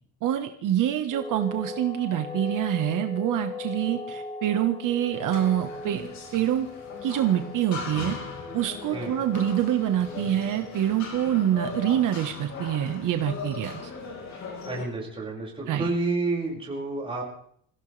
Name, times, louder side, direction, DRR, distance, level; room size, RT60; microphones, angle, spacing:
voice 1, 0.2-6.1 6.3-6.7 7.0-8.2 8.5-13.8 15.7-15.9, right 11 dB, 75° right, 6 dB, 1.4 m, -26 dB
sound 1, 1.1-11.0, left 4 dB, 20° left, 2.7 m, -39 dB
sound 2, 5.1-14.9, left 4 dB, 60° left, 4.7 m, -39 dB
voice 2, 14.7-17.2, right 3 dB, 15° right, -3 dB, 5.7 m, -29 dB
26.5 x 16.0 x 3.4 m, 0.63 s
cardioid pair, 175°, 32 cm